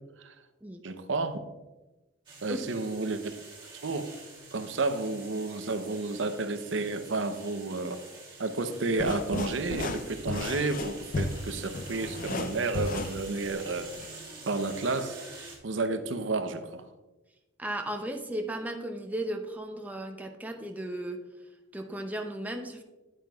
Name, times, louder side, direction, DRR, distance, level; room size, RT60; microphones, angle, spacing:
voice 1, 0.8-1.4 2.4-3.2 3.8-4.1 4.5-8.0 8.4-13.9 14.4-15.2 15.6-16.8, right 3 dB, 70° right, 9 dB, 0.7 m, -31 dB
sound 1, 2.3-15.6, right 3 dB, 25° right, 1.9 m, -47 dB
sound 2, 8.9-14.1, left 3 dB, 45° left, 0.4 m, -35 dB
voice 2, 17.6-21.2 21.7-22.8, right 1 dB, 10° right, 4 dB, 0.5 m, -35 dB
9.2 x 8.9 x 2.3 m, 1.1 s
head